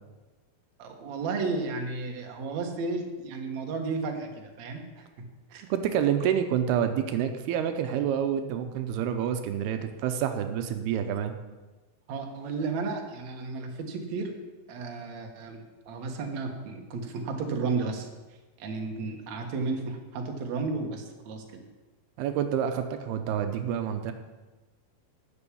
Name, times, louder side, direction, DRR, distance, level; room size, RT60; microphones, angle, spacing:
voice 1, 0.8-5.1 5.5-5.6 12.1-14.3 14.7-18.1 18.6-21.6, right 4 dB, 55° right, 2 dB, 2.5 m, -33 dB
voice 2, 5.7-11.3 22.2-24.1, right 9 dB, 85° right, 7 dB, 2.8 m, -28 dB
12.5 x 7.2 x 8.5 m, 1.2 s
omnidirectional pair, 4.4 m